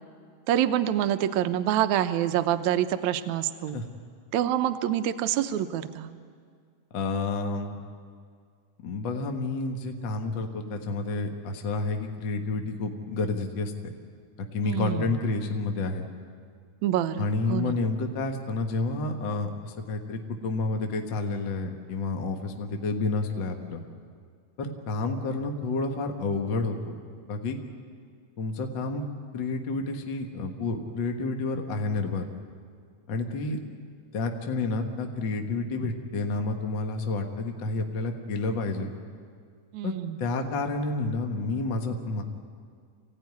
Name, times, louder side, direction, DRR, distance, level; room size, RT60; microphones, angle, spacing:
voice 1, 0.5-3.8 4.3-6.1 14.6-15.2 16.8-17.8 39.7-40.2, right 11 dB, 70° right, 10 dB, 1.9 m, -26 dB
voice 2, 6.9-7.8 8.8-13.9 14.5-16.1 17.2-23.8 24.6-26.9 27.3-27.6 28.4-29.1 29.3-32.2 33.1-33.6 34.1-38.9 39.8-39.9 40.2-42.2, left 3 dB, 50° left, 4 dB, 1.5 m, -30 dB
25.0 x 16.5 x 9.5 m, 2.1 s
omnidirectional pair, 3.9 m